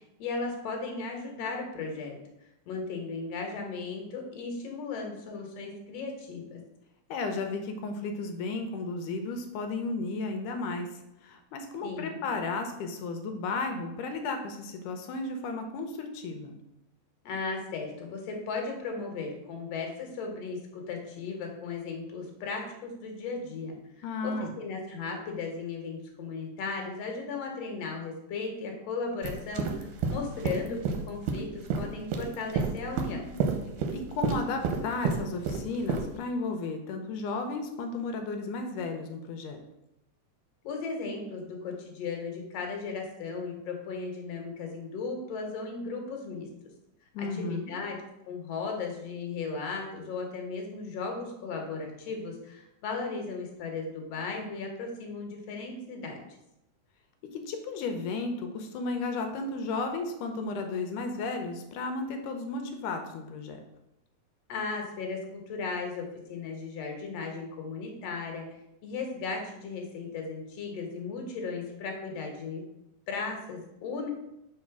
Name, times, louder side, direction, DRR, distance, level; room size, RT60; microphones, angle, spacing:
voice 1, 0.0-2.1 2.7-6.6 11.8-12.2 17.2-30.8 31.1-33.2 40.6-46.5 47.2-48.0 48.3-56.2 64.5-68.4 68.8-72.6 73.1-74.1, left 4 dB, 60° left, 2 dB, 2.0 m, -36 dB
voice 2, 7.1-10.9 11.2-16.6 24.0-24.5 33.9-39.6 47.1-47.7 57.3-63.6, left 3 dB, 80° left, 5 dB, 2.1 m, -34 dB
sound 1, 29.2-36.1, right 5 dB, 80° right, 2.1 m, -30 dB
4.8 x 4.2 x 5.9 m, 0.86 s
omnidirectional pair, 3.8 m